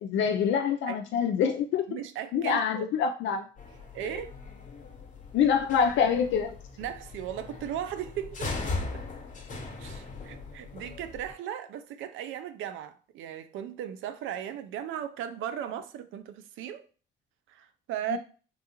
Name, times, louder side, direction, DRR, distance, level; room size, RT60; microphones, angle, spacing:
voice 1, 0.0-1.8 2.3-3.5 4.1-4.2 5.3-6.6 18.1-18.2, left 7 dB, 75° left, 0.4 m, -26 dB
voice 2, 1.9-2.9 3.9-4.3 6.8-8.6 8.9-9.0 9.8-16.9 17.5-18.2, right 10 dB, 85° right, 0.4 m, -37 dB
sound 1, 3.6-11.3, left 3 dB, 40° left, 1.0 m, -39 dB
3.7 x 2.3 x 2.9 m
cardioid pair, 90°, 20 cm